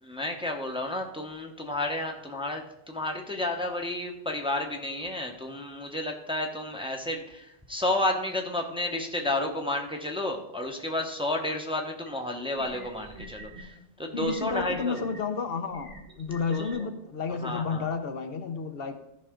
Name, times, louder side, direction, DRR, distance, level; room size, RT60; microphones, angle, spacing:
voice 1, 0.0-15.1 16.5-16.7 17.4-17.9, left 1 dB, 5° right, 2 dB, 1.0 m, -31 dB
sound 1, 12.1-12.2 12.6-13.6 14.1-15.2 15.7-16.8, left 1 dB, 30° right, 1.9 m, -44 dB
voice 2, 14.1-19.0, left 5 dB, 70° left, 7 dB, 1.0 m, -31 dB
13.5 x 5.6 x 3.8 m, 0.81 s
omnidirectional pair, 1.0 m